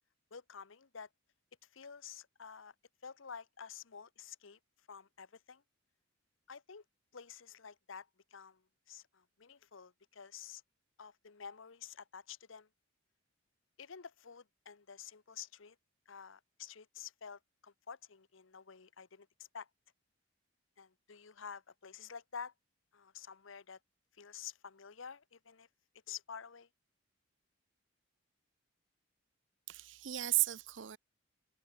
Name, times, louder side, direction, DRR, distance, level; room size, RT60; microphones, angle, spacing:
voice 1, 0.3-1.1 1.6-2.7 3.0-5.6 6.5-6.8 7.1-10.6 11.0-12.7 13.8-15.8 16.1-19.7 20.8-22.5 22.9-23.8 24.1-25.7 26.1-26.7, left 7 dB, 75° left, 0.9 m, -50 dB
voice 2, 29.7-31.0, right 17 dB, 65° right, 0.6 m, -34 dB
head